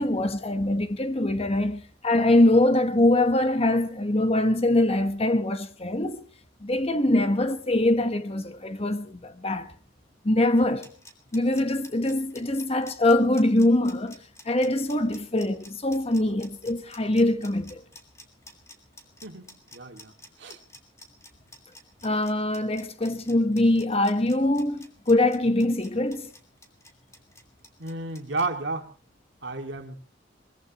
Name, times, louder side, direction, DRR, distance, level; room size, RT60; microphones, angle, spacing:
voice 1, 0.0-6.2 6.6-9.7 10.2-10.9 11.3-14.2 14.4-17.8 22.0-26.3, left 1 dB, 30° left, 1.3 m, -23 dB
sound 1, 10.6-28.4, left 1 dB, 15° left, 2.9 m, -49 dB
voice 2, 19.2-20.1 20.4-20.6 27.8-28.9 29.4-30.0, right 3 dB, 65° right, 2.2 m, -32 dB
22.5 x 21.0 x 3.0 m
head